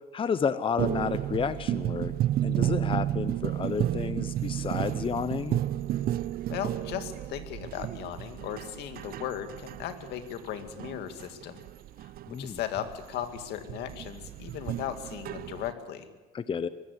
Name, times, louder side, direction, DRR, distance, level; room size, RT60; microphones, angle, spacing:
voice 1, 0.1-2.1 2.4-5.6 12.3-12.6 16.3-16.7, left 6 dB, 30° left, 13 dB, 0.8 m, -31 dB
sound 1, 0.8-15.7, right 12 dB, 60° right, 0.6 m, -32 dB
voice 2, 6.5-11.6 12.4-16.1, left 10 dB, 80° left, 8 dB, 2.1 m, -37 dB
23.5 x 13.5 x 8.3 m, 1.2 s
cardioid pair, 110°, 17 cm